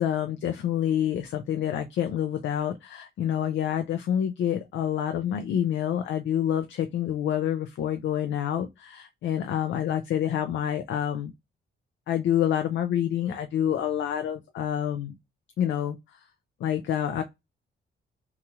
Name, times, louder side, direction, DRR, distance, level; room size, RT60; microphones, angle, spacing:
voice 1, 0.0-11.3 12.1-15.2 15.6-16.0 16.6-17.2, left 10 dB, 65° left, 0.4 m, -27 dB
2.9 x 2.3 x 2.8 m
wide cardioid pair, 175°, 21 cm